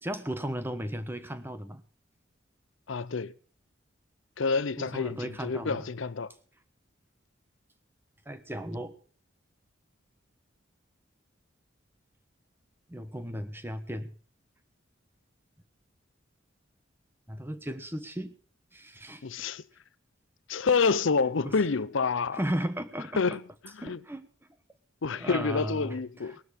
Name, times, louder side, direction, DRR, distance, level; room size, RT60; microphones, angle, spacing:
voice 1, 0.0-1.8 4.8-5.8 8.3-8.9 12.9-14.1 17.3-18.3 18.7-19.5 21.4-21.5 22.3-23.4 23.8-24.3 25.1-26.0, equal, 10° right, 1.2 m, -35 dB
voice 2, 2.9-3.3 4.4-6.3 19.2-19.6 20.5-22.4 23.2-24.0 25.0-26.4, left 4 dB, 80° left, 0.6 m, -28 dB
19.0 x 12.0 x 4.2 m
head